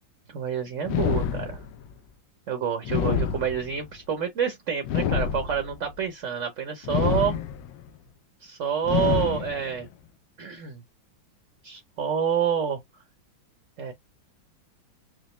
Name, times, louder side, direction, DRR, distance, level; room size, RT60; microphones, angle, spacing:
voice 1, 0.3-1.6 2.5-7.4 8.4-9.9 10.4-10.8 11.6-12.8 13.8-13.9, right 8 dB, 55° right, 0.9 m, -28 dB
sound 1, 0.8-1.9 2.8-3.9 4.8-5.9 6.8-7.9 8.8-9.9, left 8 dB, 75° left, 1.3 m, -27 dB
5.0 x 2.1 x 3.1 m
omnidirectional pair, 2.2 m